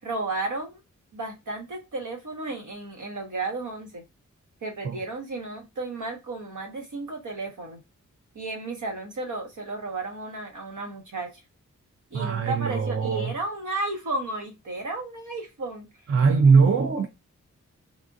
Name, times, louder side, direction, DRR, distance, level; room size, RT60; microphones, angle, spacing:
voice 1, 0.0-0.8 1.1-4.0 4.6-7.8 8.3-11.3 12.1-15.9, right 2 dB, 80° right, 1.2 m, -33 dB
voice 2, 12.1-13.3 16.1-17.1, right 5 dB, 50° right, 0.5 m, -20 dB
3.5 x 2.4 x 2.5 m
wide cardioid pair, 100°, 30 cm